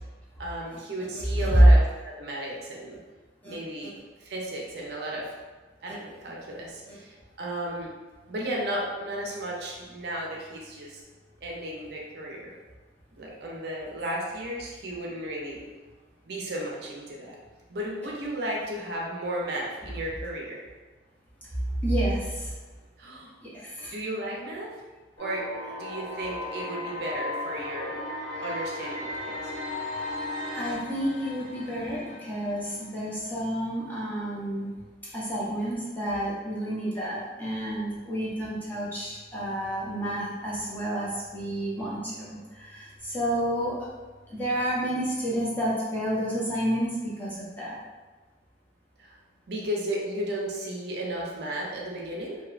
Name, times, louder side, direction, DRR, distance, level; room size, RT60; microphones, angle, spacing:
voice 1, 0.4-3.0 3.5-3.9 4.2-5.2 5.8-7.9 8.3-11.0 11.4-12.5 13.2-15.6 16.3-17.4 17.7-20.6 23.0-23.3 23.9-24.7 25.2-25.4 25.8-28.0 28.4-29.5 49.0-49.2 49.5-52.4, right 1 dB, 60° right, -2 dB, 0.4 m, -34 dB
voice 2, 1.1-1.6 3.4-3.5 21.8-22.2 23.5-23.9 30.6-34.7 35.1-41.1 41.3-42.3 42.7-42.9 43.1-43.8 44.3-46.9 47.2-47.7, equal, 10° left, -8 dB, 0.6 m, -29 dB
sound 1, 25.2-33.1, left 2 dB, 25° left, 1.0 m, -36 dB
2.7 x 2.1 x 2.4 m, 1.3 s
head